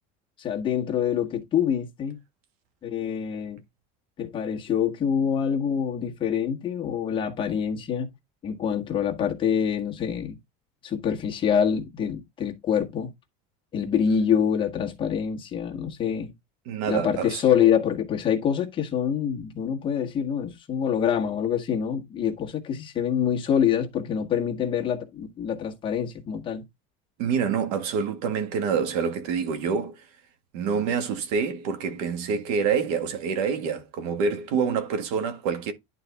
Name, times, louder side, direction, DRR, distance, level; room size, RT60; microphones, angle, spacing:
voice 1, 0.4-2.2 2.8-3.6 4.2-8.1 8.4-10.4 10.8-13.1 13.7-16.3 16.9-26.6, left 8 dB, 25° left, 1.4 m, -26 dB
voice 2, 16.6-17.4 27.2-30.0 30.5-35.7, right 6 dB, 85° right, 1.8 m, -27 dB
11.0 x 4.1 x 3.5 m
cardioid pair, 165°, 19 cm